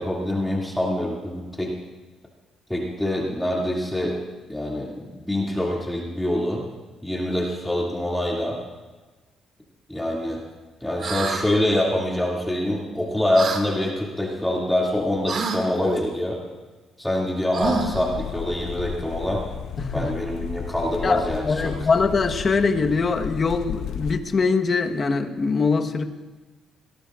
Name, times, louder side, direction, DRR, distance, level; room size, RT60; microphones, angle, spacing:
voice 1, 0.0-1.7 2.7-4.2 4.5-6.6 7.0-8.6 9.9-10.4 10.8-16.4 17.0-19.4 19.9-21.9, left 1 dB, 5° left, -3 dB, 2.5 m, -25 dB
sound 1, 11.0-11.4 13.4-13.6 15.3-15.6 17.5-18.0, right 4 dB, 60° right, 2.2 m, -27 dB
sound 2, 17.6-24.2, left 9 dB, 75° left, 0.7 m, -34 dB
voice 2, 19.8-20.1 21.0-26.0, left 4 dB, 40° left, 5 dB, 1.3 m, -22 dB
25.0 x 18.5 x 2.5 m, 1.3 s
cardioid pair, 90°, 0 cm